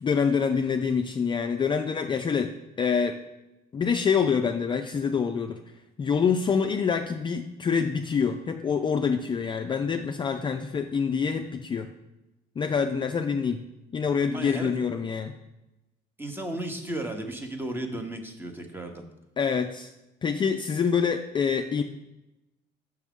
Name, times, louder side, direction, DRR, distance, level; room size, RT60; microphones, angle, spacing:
voice 1, 0.0-3.2 3.7-5.6 6.0-11.9 12.6-13.6 13.9-15.3 19.4-19.9 20.2-21.8, left 6 dB, 30° left, 5 dB, 0.4 m, -26 dB
voice 2, 14.3-14.7 16.2-19.0, right 1 dB, 10° right, 5 dB, 0.9 m, -34 dB
6.1 x 6.0 x 3.6 m, 0.95 s
cardioid pair, 110°, 17 cm